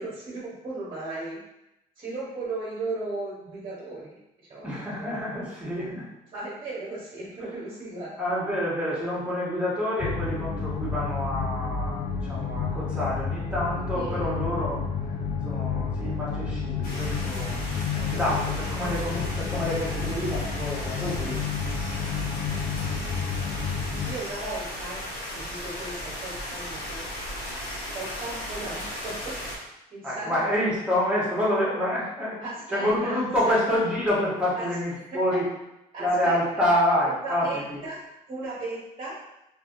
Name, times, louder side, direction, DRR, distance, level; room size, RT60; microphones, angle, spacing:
voice 1, 0.0-1.4 2.0-5.2 6.3-8.2 13.9-14.2 17.9-18.6 24.0-25.1 25.3-27.0 27.9-29.4 29.9-30.8 32.4-33.2 33.4-33.6 34.6-34.7 35.1-35.2 35.9-36.7 37.2-38.0 38.3-39.2, right 2 dB, 30° right, -6 dB, 1.1 m, -36 dB
voice 2, 4.6-6.1 8.2-14.8 15.4-21.4 30.0-32.4 32.7-35.5 36.0-37.8, left 1 dB, 5° right, -8 dB, 1.5 m, -27 dB
sound 1, 10.0-24.2, left 5 dB, 40° left, 0.5 m, -30 dB
sound 2, 16.8-29.6, left 1 dB, 55° left, 1.2 m, -36 dB
3.4 x 2.8 x 2.5 m, 0.89 s
cardioid pair, 110°, 17 cm